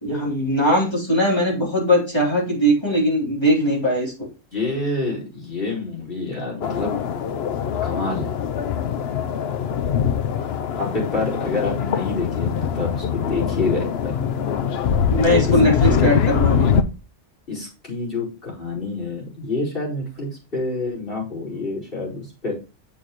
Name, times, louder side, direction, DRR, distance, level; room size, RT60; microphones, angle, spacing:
voice 1, 0.0-4.3 15.1-16.7, equal, 20° left, -3 dB, 3.6 m, -20 dB
voice 2, 4.5-6.9 7.8-8.3 10.8-14.2 15.4-15.5 15.8-16.1 17.5-22.5, left 3 dB, 45° left, -3 dB, 5.0 m, -27 dB
sound 1, 6.6-16.8, left 7 dB, 60° left, 0.9 m, -23 dB
9.0 x 6.6 x 3.1 m, 0.32 s
omnidirectional pair, 1.3 m